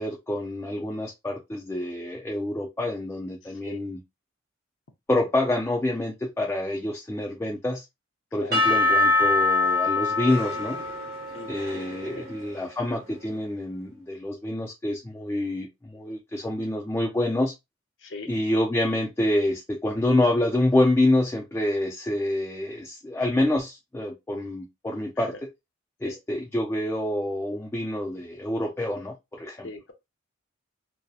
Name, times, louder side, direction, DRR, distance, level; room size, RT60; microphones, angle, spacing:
voice 1, 0.0-4.0 5.1-7.8 8.3-10.8 11.5-17.5 18.3-25.5 26.0-29.7, left 1 dB, 10° left, 0.3 m, -27 dB
Percussion / Church bell, 8.5-12.6, left 3 dB, 50° right, 0.9 m, -24 dB
voice 2, 11.3-11.9 12.1-12.3 18.0-18.3 25.3-25.4 26.0-26.2 29.6-29.9, left 3 dB, 65° left, 0.6 m, -40 dB
2.7 x 2.0 x 2.3 m
head